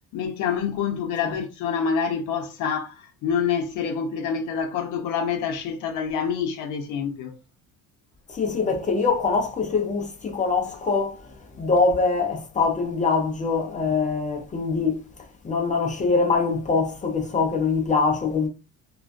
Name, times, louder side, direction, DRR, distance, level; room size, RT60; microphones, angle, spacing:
voice 1, 0.1-7.4, left 6 dB, 65° left, 0.6 m, -27 dB
voice 2, 8.3-15.0 15.4-18.5, left 4 dB, 25° left, 0.5 m, -23 dB
2.3 x 2.2 x 2.4 m
cardioid pair, 125°, 33 cm